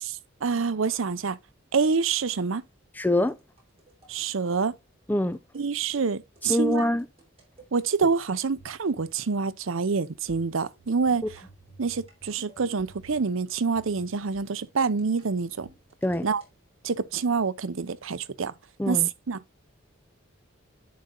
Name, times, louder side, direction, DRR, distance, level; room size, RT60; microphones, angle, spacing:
voice 1, 0.0-1.4 1.7-2.6 4.1-4.7 5.5-6.9 7.7-11.2 11.8-15.7 16.2-16.4 16.8-18.5 18.9-19.4, right 5 dB, 75° right, 0.6 m, -27 dB
voice 2, 3.0-3.3 5.1-5.4 6.5-7.0 16.0-16.3 18.8-19.1, left 1 dB, 10° left, 0.4 m, -24 dB
sound 1, 3.3-4.6 5.3-5.7 5.9-6.1 6.4-6.5 6.8-8.1 8.6-9.2 9.4-9.7 10.3-13.4 13.8-16.5, right 3 dB, 30° right, 3.1 m, -53 dB
10.5 x 4.2 x 3.8 m
head